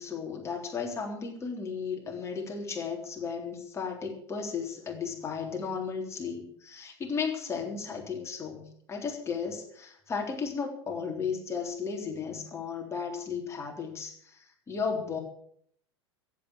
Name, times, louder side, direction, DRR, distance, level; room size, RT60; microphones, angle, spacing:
voice 1, 0.0-14.4 14.7-15.2, left 5 dB, 20° left, 1 dB, 3.7 m, -34 dB
15.0 x 8.8 x 8.3 m, 0.65 s
figure-of-eight pair, 90°, 14 cm